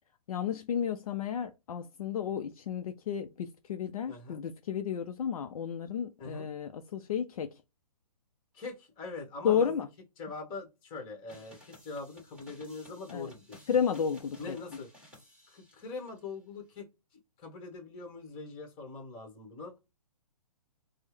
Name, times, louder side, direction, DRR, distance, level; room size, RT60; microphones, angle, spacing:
voice 1, 0.3-7.6 9.4-9.9 13.1-13.3 13.7-14.6, left 7 dB, 60° left, 0.5 m, -32 dB
voice 2, 4.1-4.4 6.2-6.5 8.5-9.7 10.2-13.6 14.4-14.9 15.5-19.8, left 3 dB, 25° left, 1.2 m, -43 dB
sound 1, 11.3-16.2, left 1 dB, 5° right, 1.4 m, -56 dB
4.3 x 2.1 x 3.1 m
hypercardioid pair, 140°, 21 cm